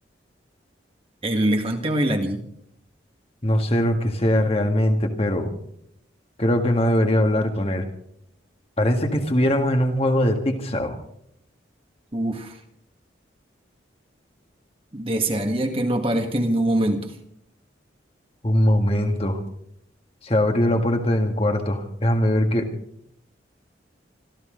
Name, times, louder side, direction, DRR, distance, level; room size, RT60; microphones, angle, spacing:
voice 1, 1.2-2.4 12.1-12.6 14.9-17.1, right 1 dB, 30° right, 4 dB, 1.8 m, -23 dB
voice 2, 3.4-5.5 6.4-7.8 8.8-11.0 18.4-19.4 20.2-22.7, left 1 dB, 30° left, 4 dB, 1.8 m, -21 dB
25.5 x 14.0 x 3.8 m, 0.70 s
head